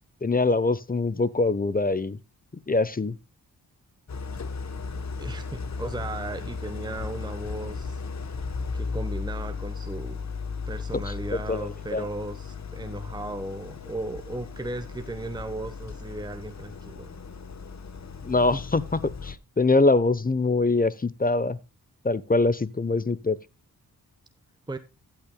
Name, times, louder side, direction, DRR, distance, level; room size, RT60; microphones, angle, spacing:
voice 1, 0.2-2.2 2.7-3.1 10.9-11.0 11.5-12.1 18.2-21.6 22.0-23.4, left 3 dB, 25° left, 0.8 m, -23 dB
Idling, 4.1-19.4, left 4 dB, 45° left, 1.1 m, -36 dB
voice 2, 4.9-8.0 8.3-8.4 8.7-10.3 10.7-17.2 24.7-24.8, right 2 dB, 10° right, 1.0 m, -36 dB
15.0 x 9.1 x 2.2 m
cardioid pair, 65°, 38 cm